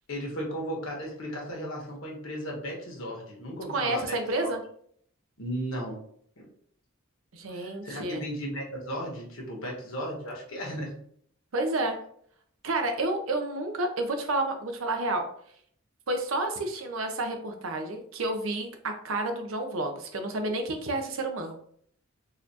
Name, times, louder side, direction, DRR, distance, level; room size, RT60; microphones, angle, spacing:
voice 1, 0.1-4.5 5.4-6.0 6.4-6.5 7.5-10.9, equal, 70° left, -1 dB, 1.2 m, -35 dB
voice 2, 3.7-4.6 7.3-8.2 11.5-12.0 12.6-15.3 16.1-21.6, right 2 dB, 75° right, 5 dB, 0.6 m, -30 dB
4.0 x 2.5 x 2.8 m, 0.63 s
head